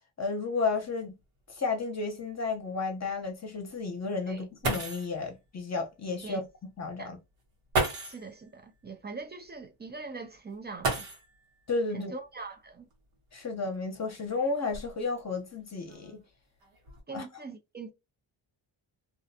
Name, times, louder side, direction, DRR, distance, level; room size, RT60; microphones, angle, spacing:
voice 1, 0.2-1.1 1.5-7.2 11.7-12.1 13.3-16.2 17.1-17.3, left 4 dB, 35° left, 0.8 m, -32 dB
sound 1, 0.7-0.8 1.2-1.3 1.9-2.0 4.3-4.4 4.6-5.2 6.5-6.6 7.7-8.3 10.8-11.5 12.9-13.0 13.7-15.2 15.9-16.3 16.6-17.0, right 3 dB, 85° right, 1.1 m, -33 dB
voice 2, 8.0-11.1 11.9-12.9 17.1-17.9, right 4 dB, 25° right, 0.3 m, -42 dB
2.4 x 2.2 x 2.6 m
cardioid pair, 95°, 49 cm